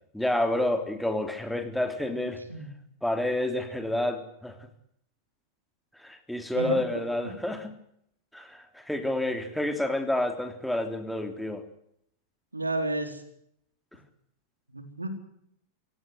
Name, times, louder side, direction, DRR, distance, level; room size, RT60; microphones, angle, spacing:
voice 1, 0.1-2.4 3.0-4.6 6.0-7.7 8.3-11.6, left 1 dB, ahead, 6 dB, 3.4 m, -29 dB
voice 2, 2.0-2.7 6.5-6.8 7.2-7.4 12.5-13.2 14.7-15.1, right 2 dB, 80° right, 8 dB, 4.2 m, -32 dB
27.0 x 17.5 x 8.0 m, 0.72 s
figure-of-eight pair, 90°, 0 cm